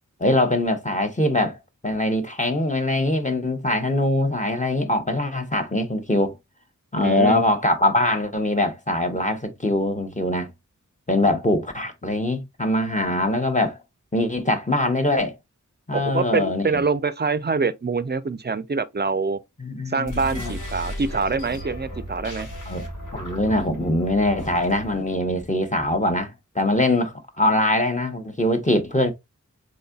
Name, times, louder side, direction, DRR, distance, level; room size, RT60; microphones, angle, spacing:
voice 1, 0.2-6.4 6.9-10.5 11.1-13.8 14.1-15.4 15.9-16.8 19.6-20.5 22.7-22.8 23.1-29.1, left 1 dB, 25° left, 0.8 m, -23 dB
voice 2, 7.0-7.4 15.9-19.4 19.9-22.5, right 4 dB, 35° right, 0.4 m, -25 dB
sound 1, 20.0-25.1, equal, 70° left, 1.6 m, -35 dB
3.9 x 3.6 x 2.3 m
wide cardioid pair, 55°, 31 cm